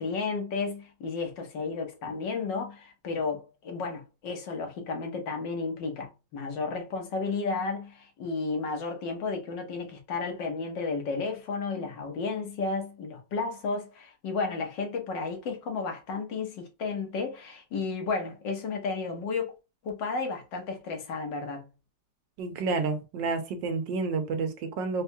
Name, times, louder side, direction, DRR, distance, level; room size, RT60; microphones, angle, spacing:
voice 1, 0.0-19.5 19.8-21.7, left 4 dB, 75° left, 1.7 m, -33 dB
voice 2, 22.4-25.0, right 4 dB, 85° right, 1.5 m, -30 dB
4.1 x 2.3 x 2.6 m
omnidirectional pair, 2.0 m